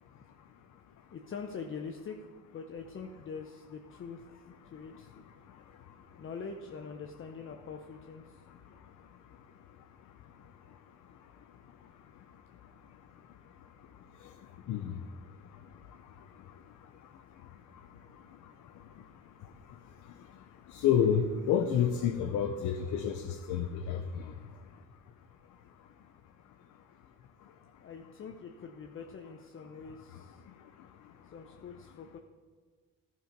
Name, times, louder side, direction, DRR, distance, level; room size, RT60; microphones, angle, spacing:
voice 1, 1.1-2.3 2.5-4.2 4.6-5.1 6.2-8.4 27.8-30.4 31.3-32.2, left 5 dB, 45° left, 4 dB, 0.7 m, -44 dB
voice 2, 20.7-24.2, left 8 dB, 80° left, 6 dB, 0.6 m, -29 dB
11.5 x 4.7 x 5.2 m, 1.5 s
cardioid pair, 90°, 30 cm